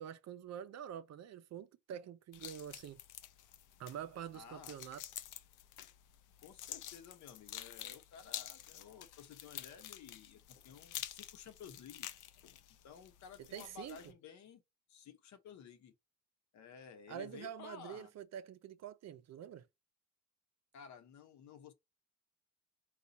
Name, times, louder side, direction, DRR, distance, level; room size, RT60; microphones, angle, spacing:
voice 1, 0.0-3.0 3.8-5.0 13.4-14.0 17.1-19.7, right 9 dB, 60° right, 0.6 m, -46 dB
sound 1, 2.3-14.1, left 12 dB, 85° left, 0.6 m, -49 dB
voice 2, 4.3-4.8 6.4-12.1 12.8-14.6 14.9-15.9 16.5-18.1 20.7-21.7, left 7 dB, 70° left, 1.0 m, -54 dB
4.2 x 2.3 x 4.0 m
cardioid pair, 90°, 30 cm